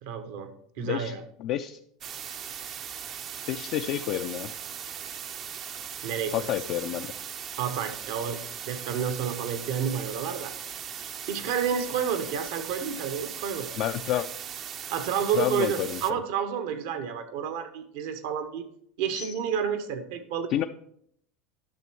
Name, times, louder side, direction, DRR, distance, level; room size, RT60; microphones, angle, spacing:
voice 1, 0.0-1.2 6.0-6.6 7.5-8.4 8.7-10.5 11.3-13.7 14.9-18.6 19.0-20.7, right 7 dB, 70° right, 9 dB, 1.1 m, -30 dB
voice 2, 0.8-1.1 1.4-1.8 3.5-4.5 6.3-7.1 13.8-14.3 15.3-16.0 19.1-19.3 20.5-20.6, left 12 dB, 55° left, 6 dB, 0.4 m, -29 dB
sound 1, 2.0-16.1, right 8 dB, 45° right, 0.6 m, -39 dB
11.0 x 6.2 x 4.6 m, 0.69 s
supercardioid pair, 105°, 0 cm